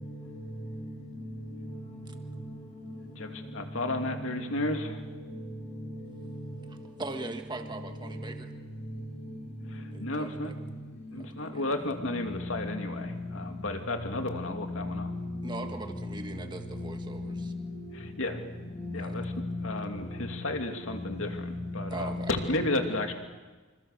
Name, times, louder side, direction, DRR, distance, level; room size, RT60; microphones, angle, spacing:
voice 1, 0.7-1.4 1.7-1.8 2.9-3.1 3.5-3.6 3.9-4.1 4.9-5.3 5.7-6.2 7.0-8.2 8.8-9.1 9.3-9.4 14.6-15.6 16.7-16.8 17.1-17.9 18.7-19.5 21.4-21.5 21.9-22.3, left 2 dB, 30° left, -2 dB, 6.4 m, -38 dB
voice 2, 3.2-5.0 9.7-10.5 11.1-15.1 17.9-18.4 18.9-19.3 19.6-23.1, left 2 dB, 60° left, 5 dB, 2.7 m, -33 dB
voice 3, 7.0-8.5 9.9-10.5 11.1-11.7 15.4-17.4 19.0-19.2 21.9-22.3, right 2 dB, 20° right, 5 dB, 1.7 m, -40 dB
27.0 x 26.5 x 6.8 m, 1.3 s
head